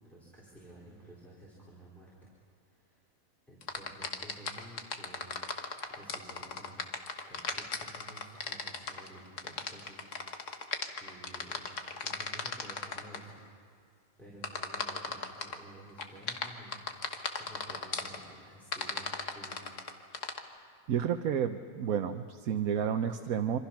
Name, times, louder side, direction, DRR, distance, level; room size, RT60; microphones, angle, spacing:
voice 1, 0.0-2.1 2.6-3.0 3.5-5.3 5.9-6.8 7.3-10.1 10.3-10.4 10.8-13.4 14.2-16.8 17.4-19.7, right 1 dB, ahead, -6 dB, 4.2 m, -52 dB
sound 1, 3.6-13.2 14.4-15.6 16.0-18.2 18.7-20.4, left 4 dB, 60° left, 1.7 m, -36 dB
voice 2, 20.9-23.6, right 8 dB, 80° right, 6 dB, 1.2 m, -31 dB
26.5 x 25.5 x 5.9 m, 2.1 s
omnidirectional pair, 1.5 m